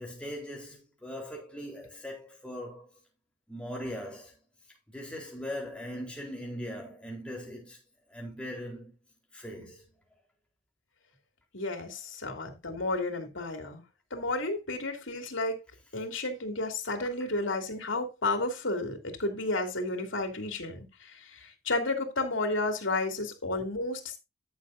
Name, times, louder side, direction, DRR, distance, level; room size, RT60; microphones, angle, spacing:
voice 1, 0.0-2.9 3.5-4.3 4.9-7.8 8.1-8.9 9.3-9.8, equal, 5° left, 4.0 m, -40 dB
voice 2, 11.5-13.8 14.1-15.6 15.9-24.2, left 2 dB, 80° left, 2.8 m, -32 dB
14.0 x 7.1 x 2.7 m
head